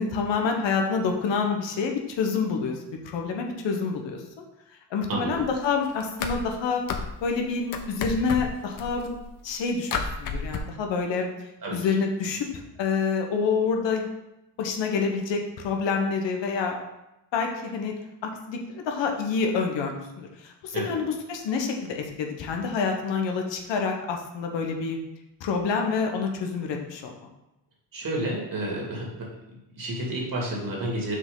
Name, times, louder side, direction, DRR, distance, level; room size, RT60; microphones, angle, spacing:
voice 1, 0.0-4.2 4.9-6.8 7.2-9.1 9.4-9.9 10.2-11.3 11.7-12.5 12.8-14.0 14.6-16.7 17.3-17.9 18.5-25.0 25.4-27.1, left 5 dB, 80° left, 3 dB, 1.2 m, -27 dB
voice 2, 5.1-5.4 11.6-11.9 20.7-20.9 27.9-31.2, right 1 dB, 50° right, -3 dB, 2.4 m, -31 dB
sound 1, 5.4-5.7 5.9-7.4 7.7-9.5 9.9-10.6, left 5 dB, 50° left, 0.8 m, -32 dB
6.1 x 5.1 x 3.8 m, 0.92 s
cardioid pair, 110°, 43 cm